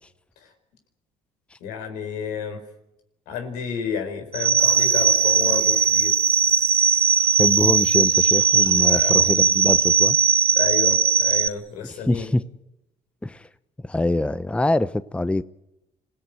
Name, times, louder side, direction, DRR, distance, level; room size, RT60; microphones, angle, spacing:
voice 1, 1.6-2.6 3.3-6.2 8.8-9.3 10.6-12.3, left 7 dB, 90° left, 4.6 m, -31 dB
sound 1, 4.3-11.5, right 6 dB, 40° right, 0.8 m, -18 dB
sound 2, 4.6-12.0, right 4 dB, 25° right, 2.4 m, -46 dB
voice 2, 7.4-10.2 12.1-12.4 13.2-13.4 13.8-15.4, left 1 dB, 10° left, 0.8 m, -24 dB
26.0 x 17.0 x 9.3 m
supercardioid pair, 85°, 15 cm